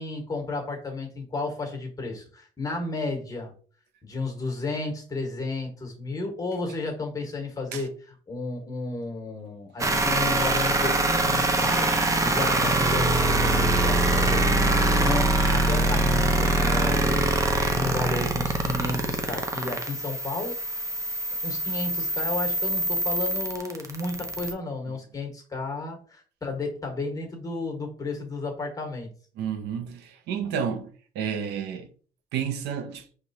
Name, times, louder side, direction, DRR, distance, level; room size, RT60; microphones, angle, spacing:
voice 1, 0.0-3.5 4.0-7.9 8.3-17.3 17.7-20.6 21.4-29.1, left 3 dB, 20° left, 1.4 m, -33 dB
sound 1, 9.8-24.5, right 2 dB, 20° right, 0.6 m, -24 dB
voice 2, 29.4-30.9 31.1-31.9 32.3-33.0, right 7 dB, 80° right, 0.7 m, -30 dB
4.8 x 3.3 x 2.8 m
cardioid pair, 110°, 17 cm